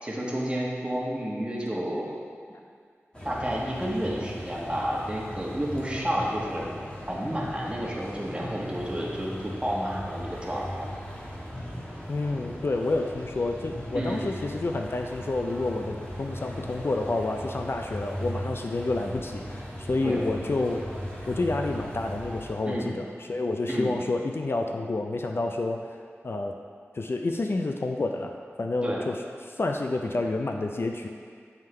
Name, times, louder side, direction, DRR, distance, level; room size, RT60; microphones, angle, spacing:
voice 1, 0.0-2.1 3.2-6.6 7.1-10.8 13.9-14.2 20.0-20.2 22.7-22.9 23.7-23.9 28.8-29.0, equal, 20° right, -4 dB, 1.3 m, -30 dB
sound 1, 3.1-22.5, equal, 20° left, 1.4 m, -38 dB
voice 2, 12.1-20.8 21.3-26.0 26.2-26.5 26.9-29.2 29.5-31.1, left 2 dB, 55° left, 3 dB, 0.4 m, -29 dB
9.1 x 3.6 x 3.3 m, 2.1 s
wide cardioid pair, 50°, 5 cm